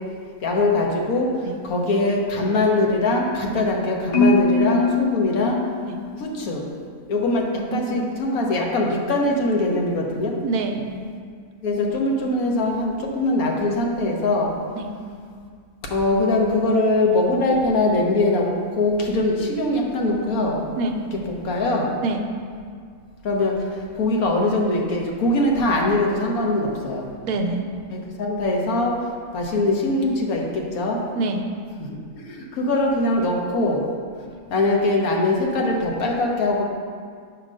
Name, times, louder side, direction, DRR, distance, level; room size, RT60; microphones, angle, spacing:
voice 1, 0.4-1.3 1.6-5.6 6.2-6.6 7.1-10.3 11.6-14.5 15.9-18.5 18.8-20.6 21.4-21.9 23.2-23.5 23.9-27.0 27.9-28.9 29.3-31.0 32.3-33.8 34.5-36.6, left 2 dB, 75° left, 0 dB, 1.4 m, -22 dB
Marimba xylophone, 4.1-6.3, left 3 dB, 90° left, 1.6 m, -22 dB
voice 2, 7.5-8.0 10.4-10.9 14.7-14.9 20.8-21.0 22.0-22.2 27.2-27.6 31.2-31.5, right 3 dB, 80° right, 4 dB, 1.1 m, -26 dB
9.0 x 3.0 x 6.1 m, 2.1 s
omnidirectional pair, 1.5 m